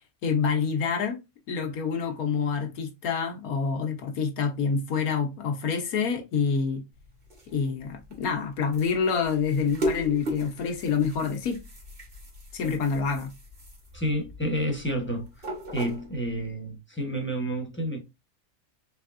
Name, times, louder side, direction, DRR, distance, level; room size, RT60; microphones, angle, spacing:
voice 1, 0.2-1.2 1.5-6.8 7.5-11.6 12.5-13.3, left 6 dB, 80° left, 1.4 m, -27 dB
sound 1, 6.9-16.5, equal, 40° right, 1.7 m, -38 dB
voice 2, 13.9-15.5 15.7-18.0, equal, 10° left, 1.0 m, -30 dB
4.5 x 3.4 x 2.5 m
omnidirectional pair, 1.5 m